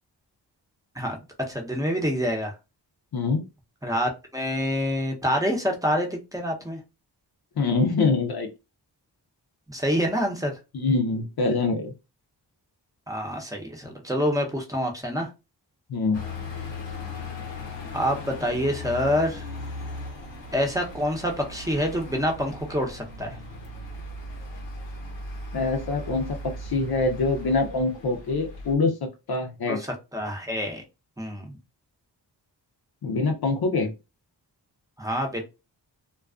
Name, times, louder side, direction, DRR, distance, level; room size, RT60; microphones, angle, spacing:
voice 1, 1.0-2.5 3.8-6.8 9.7-10.5 13.1-15.3 17.9-19.5 20.5-23.4 29.7-29.9 30.1-30.8 31.2-31.6 35.0-35.4, equal, 10° right, 1 dB, 0.7 m, -27 dB
voice 2, 3.1-3.4 7.6-8.5 10.7-11.9 15.9-16.2 25.5-29.0 29.3-29.8 33.0-33.9, left 3 dB, 60° left, 4 dB, 0.6 m, -24 dB
sound 1, 16.1-28.7, left 2 dB, 85° left, 0.9 m, -38 dB
2.3 x 2.2 x 2.3 m, 0.27 s
cardioid pair, 50°, 44 cm